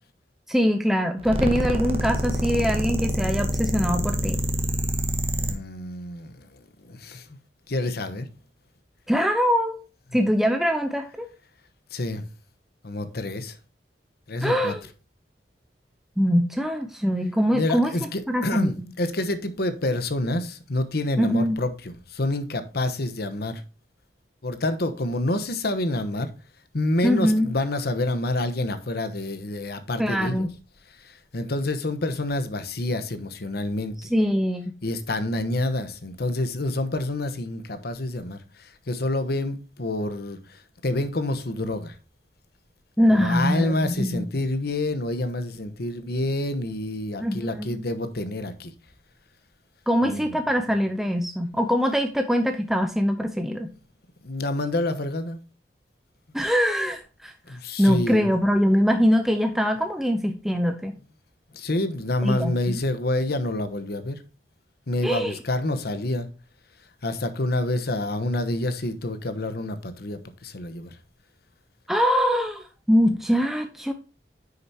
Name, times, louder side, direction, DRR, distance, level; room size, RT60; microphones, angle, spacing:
voice 1, 0.5-4.4 9.1-9.8 10.1-11.3 14.4-14.8 16.2-17.9 18.3-18.7 21.2-21.6 27.0-27.5 30.0-30.5 34.0-34.7 43.0-44.2 47.2-47.8 49.9-53.7 56.3-61.0 62.2-62.8 65.0-65.4 71.9-73.9, equal, ahead, 0.6 m, -23 dB
sound 1, 1.2-5.5, equal, 35° right, 1.3 m, -26 dB
voice 2, 5.4-7.4 7.7-8.3 11.9-12.2 12.8-13.6 14.3-14.7 17.5-23.6 24.4-26.3 26.7-30.5 30.9-34.1 34.8-42.0 43.1-48.7 50.0-50.4 54.2-55.4 57.5-58.3 61.5-64.2 64.9-66.3 67.0-71.0, left 2 dB, 65° left, 1.1 m, -28 dB
9.2 x 6.8 x 2.8 m
head